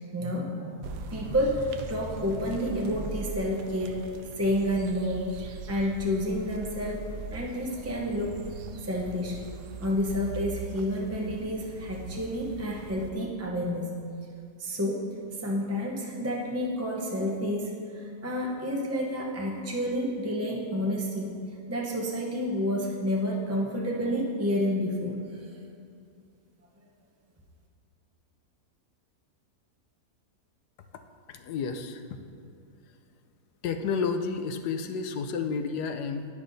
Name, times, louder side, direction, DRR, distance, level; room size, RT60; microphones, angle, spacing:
voice 1, 0.1-4.0 4.4-8.4 8.8-9.4 9.8-13.9 14.6-15.1 15.4-21.4 21.7-25.2, equal, 25° right, -3 dB, 0.3 m, -30 dB
sound 1, 0.8-13.1, right 4 dB, 85° right, 1.2 m, -41 dB
voice 2, 31.3-32.0 33.6-36.3, left 5 dB, 85° left, 7 dB, 1.2 m, -31 dB
10.5 x 9.6 x 2.7 m, 2.4 s
omnidirectional pair, 1.7 m